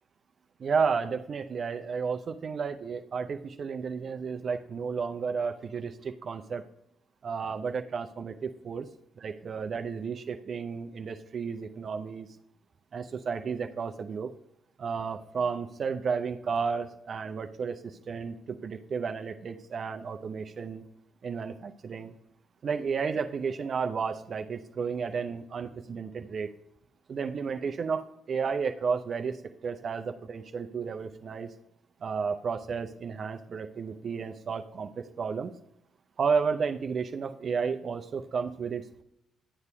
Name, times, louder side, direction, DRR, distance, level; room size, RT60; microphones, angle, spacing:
voice 1, 0.6-6.6 7.2-8.9 9.2-12.3 12.9-14.3 14.8-20.8 21.2-22.1 22.6-26.5 27.1-31.5 32.0-35.5 36.2-39.0, right 5 dB, 50° right, 6 dB, 0.5 m, -32 dB
12.0 x 8.1 x 2.2 m, 0.80 s
hypercardioid pair, 50°, 0 cm